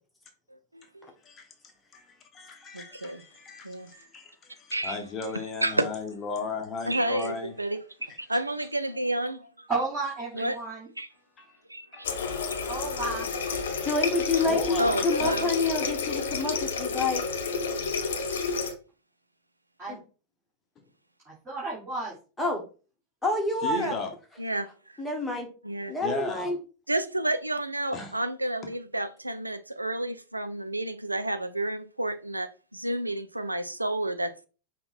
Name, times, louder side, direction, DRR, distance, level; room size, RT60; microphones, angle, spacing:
voice 1, 0.5-1.1 2.7-3.2 3.6-3.9 4.7-5.0 5.3-5.9 6.9-9.7 10.3-10.6 11.0-11.1 11.7-12.1 12.5-12.6 14.8-15.5 23.7-23.9 24.4-25.0 25.6-26.0 26.9-34.5, right 1 dB, 85° right, 0.4 m, -31 dB
voice 2, 1.9-7.5 11.4-11.6 11.9-12.4 14.4-15.3 15.8-16.0 23.6-24.1 26.0-26.5 27.9-28.1, left 4 dB, 25° left, 0.8 m, -36 dB
voice 3, 9.7-10.9 12.7-13.3 19.8-20.0 21.2-22.1, right 3 dB, 20° right, 1.9 m, -32 dB
Water tap faucet, 12.0-18.7, left 4 dB, 60° left, 0.7 m, -30 dB
voice 4, 13.8-14.8 15.0-17.2 19.9-20.0 22.4-22.6 23.2-24.0 25.0-25.5 25.9-26.6, left 2 dB, 10° left, 1.2 m, -28 dB
5.6 x 2.2 x 4.2 m
figure-of-eight pair, 90°, 0 cm